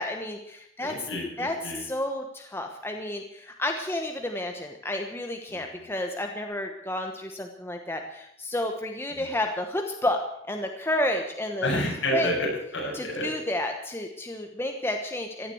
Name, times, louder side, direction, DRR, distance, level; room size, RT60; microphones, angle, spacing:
voice 1, 0.0-1.1 1.4-1.5 1.8-11.7 12.1-12.3 12.9-15.5, left 1 dB, 10° left, 3 dB, 1.1 m, -31 dB
voice 2, 0.8-1.8 5.5-5.8 9.2-9.3 11.6-13.3, left 1 dB, 65° left, -2 dB, 7.6 m, -30 dB
16.0 x 11.0 x 7.9 m, 0.76 s
head